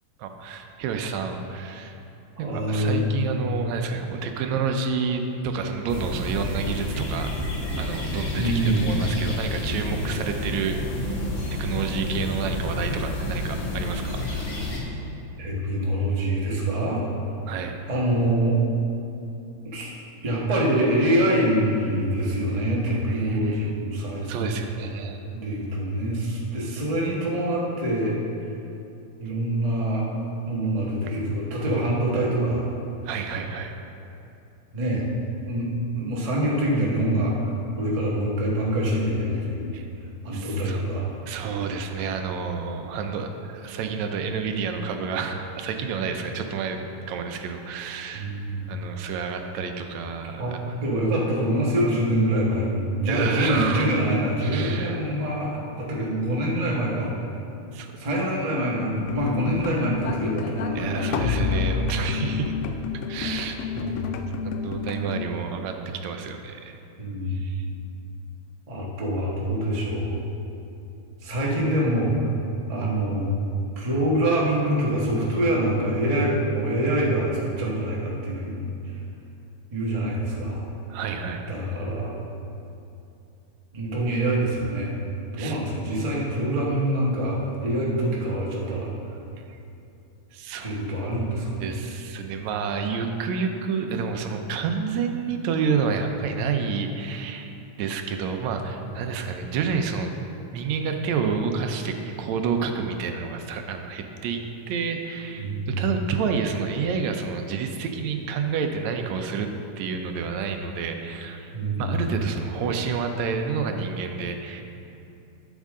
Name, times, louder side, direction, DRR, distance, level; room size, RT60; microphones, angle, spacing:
voice 1, 0.2-2.0 2.4-7.4 7.7-10.8 11.5-14.6 17.5-17.8 23.1-23.7 24.2-25.2 33.1-33.7 39.7-39.9 40.3-40.8 41.3-48.3 48.7-50.8 53.1-54.0 54.4-55.0 57.7-58.0 60.8-62.5 63.1-63.6 64.4-66.8 67.3-67.6 80.9-81.5 85.4-85.6 89.5-89.6 90.3-90.7 91.6-100.1 100.5-109.5 109.8-111.5 111.8-114.6, right 5 dB, 80° right, 5 dB, 1.9 m, -29 dB
voice 2, 2.4-3.0 8.3-8.9 15.4-17.0 17.9-18.6 19.6-20.0 20.2-24.6 25.3-28.2 29.2-30.1 30.4-32.7 34.7-35.1 35.4-35.7 35.9-37.5 37.8-39.7 40.2-41.2 48.1-48.7 50.4-50.5 50.8-57.1 58.0-61.4 63.2-64.1 67.0-67.4 68.7-70.2 71.2-72.3 72.7-73.4 73.8-79.0 79.7-80.6 81.5-82.1 83.7-84.9 85.3-88.9 90.6-91.7 98.9-99.0 105.4-105.8 111.5-112.2, right 1 dB, 65° right, -5 dB, 0.3 m, -25 dB
sound 1, 5.9-14.8, left 1 dB, 45° left, 2.0 m, -29 dB
sound 2, 59.1-65.3, left 6 dB, 85° left, 2.0 m, -29 dB
12.0 x 7.3 x 3.7 m, 2.7 s
omnidirectional pair, 3.3 m